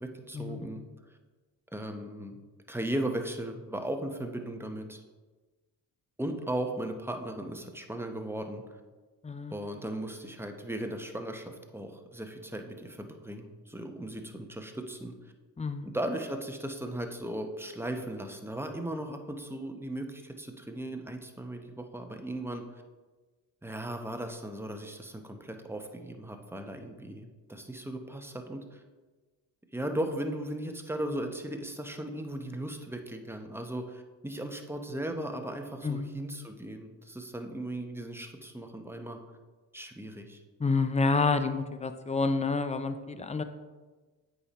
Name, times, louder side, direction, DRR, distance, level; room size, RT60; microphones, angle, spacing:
voice 1, 0.0-0.8 1.1-1.2 1.7-2.4 2.7-5.0 6.2-8.6 9.5-15.1 15.8-22.6 23.6-28.8 29.7-39.2 39.7-40.4, right 1 dB, 5° right, 4 dB, 0.9 m, -37 dB
voice 2, 15.6-15.9 35.8-36.1 40.6-43.4, left 4 dB, 15° left, 10 dB, 0.6 m, -28 dB
8.1 x 5.4 x 3.0 m, 1.3 s
supercardioid pair, 60°, 48 cm